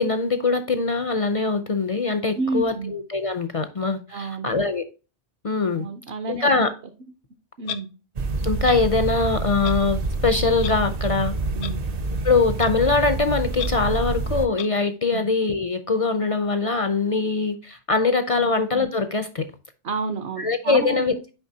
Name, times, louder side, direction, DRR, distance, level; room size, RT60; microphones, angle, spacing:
voice 1, 0.0-4.8 5.4-5.9 6.3-6.7 8.4-11.3 12.2-19.5 20.4-21.1, left 3 dB, 45° left, 0.4 m, -22 dB
voice 2, 2.4-2.9 4.1-4.5 5.8-6.5 7.6-7.9 11.5-11.8 15.1-15.3 18.3-18.5 19.8-21.0, right 3 dB, 65° right, 1.0 m, -30 dB
Clock, 7.7-7.8 8.6-8.8 9.6-9.8 10.6-10.7 11.6-11.7 12.6-12.7 13.6-13.7 14.6-14.7, left 9 dB, 70° left, 0.8 m, -32 dB
sound 1, 8.2-14.5, right 3 dB, 45° right, 0.5 m, -27 dB
6.9 x 5.2 x 2.7 m
omnidirectional pair, 1.2 m